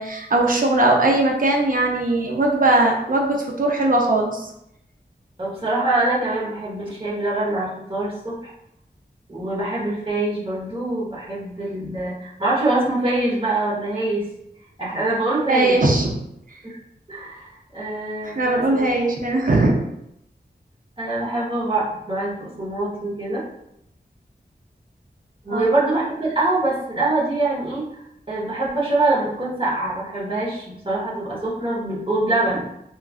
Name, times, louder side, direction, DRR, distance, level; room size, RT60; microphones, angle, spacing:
voice 1, 0.0-4.5 15.5-16.1 18.2-19.7 25.5-25.7, right 2 dB, 50° right, 0 dB, 0.6 m, -19 dB
voice 2, 5.4-8.5 9.3-14.2 14.8-15.8 16.6-16.8 17.1-18.9 21.0-23.4 25.4-32.7, right 2 dB, 30° right, -7 dB, 1.1 m, -24 dB
3.2 x 2.4 x 2.4 m, 0.80 s
wide cardioid pair, 75°, 17 cm